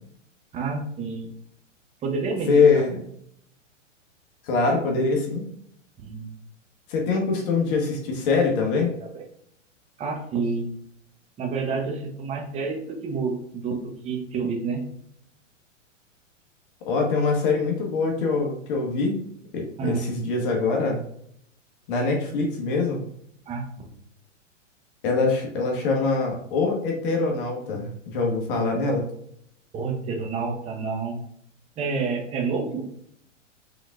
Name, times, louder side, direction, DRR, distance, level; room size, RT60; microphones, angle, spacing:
voice 1, 0.5-1.3 2.0-2.9 6.0-6.4 8.7-9.2 10.0-10.7 11.4-14.9 19.8-20.1 23.5-24.0 29.7-31.2 31.8-32.8, right 4 dB, 20° right, 1 dB, 0.8 m, -29 dB
voice 2, 2.5-3.0 4.4-5.4 6.9-8.9 16.9-19.2 19.5-21.0 21.9-23.0 25.0-29.1, left 4 dB, 45° left, 1 dB, 1.2 m, -23 dB
5.2 x 3.6 x 2.3 m, 0.69 s
hypercardioid pair, 115°, 38 cm